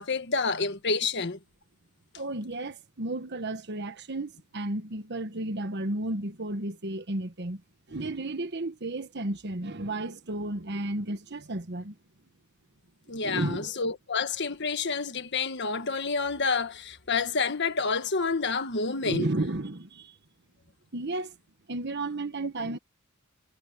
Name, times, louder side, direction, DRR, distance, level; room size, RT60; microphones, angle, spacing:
voice 1, 0.0-1.4 13.1-19.3, left 4 dB, 55° left, 1.5 m, -29 dB
voice 2, 2.1-7.6 7.9-12.0 13.2-13.8 19.0-20.2 20.9-21.3 21.7-22.8, right 2 dB, 55° right, 1.3 m, -33 dB
head